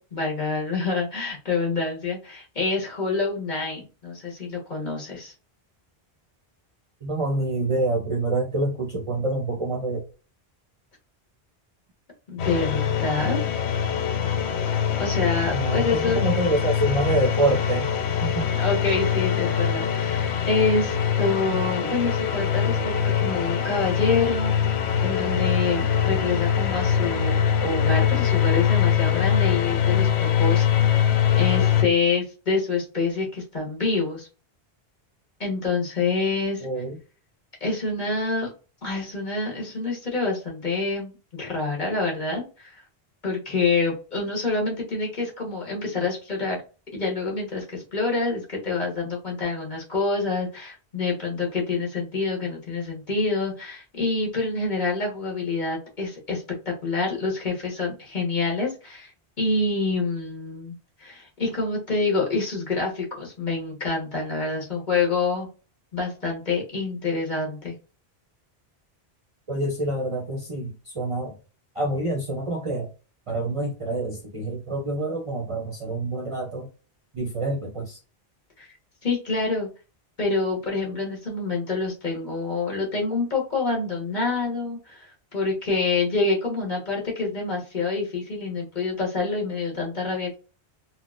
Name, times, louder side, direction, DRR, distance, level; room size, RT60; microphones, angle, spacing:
voice 1, 0.0-5.3 12.3-13.4 14.6-16.2 18.6-22.8 23.2-24.8 25.0-30.1 30.4-31.1 31.3-34.3 35.4-36.7 37.6-38.5 38.8-42.8 43.2-46.6 46.9-59.1 59.4-65.5 65.9-67.8 78.6-78.7 79.0-79.7 80.2-90.3, left 3 dB, 50° left, -2 dB, 1.4 m, -27 dB
voice 2, 7.0-10.1 15.5-17.9 18.2-18.6 36.6-37.0 69.5-71.4 71.7-72.9 73.3-76.7 77.1-78.0, right 2 dB, 40° right, 0 dB, 0.6 m, -26 dB
sound 1, 12.4-31.8, left 8 dB, 90° left, 0.9 m, -23 dB
3.8 x 2.1 x 2.4 m, 0.34 s
omnidirectional pair, 1.1 m